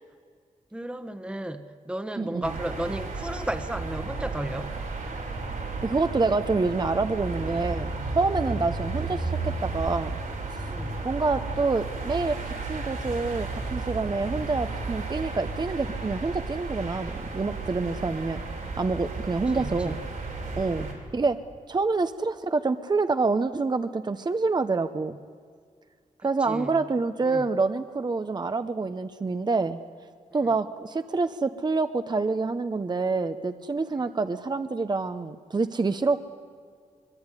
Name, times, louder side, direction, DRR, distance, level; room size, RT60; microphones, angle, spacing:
voice 1, 0.7-4.7 8.5-8.6 10.7-11.0 19.5-20.0 20.7-21.0 26.4-26.8 27.2-27.5 30.4-30.5 34.0-34.1, right 1 dB, 10° right, 8 dB, 1.2 m, -34 dB
voice 2, 2.2-2.5 5.8-10.2 11.0-18.4 18.8-20.0 20.6-20.8 21.1-21.4 21.7-25.2 26.2-29.8 30.3-36.2, right 3 dB, 30° right, 10 dB, 0.8 m, -27 dB
sound 1, 2.4-20.9, right 3 dB, 85° right, 5.6 m, -33 dB
24.5 x 22.0 x 9.8 m, 2.1 s
wide cardioid pair, 90°, 14 cm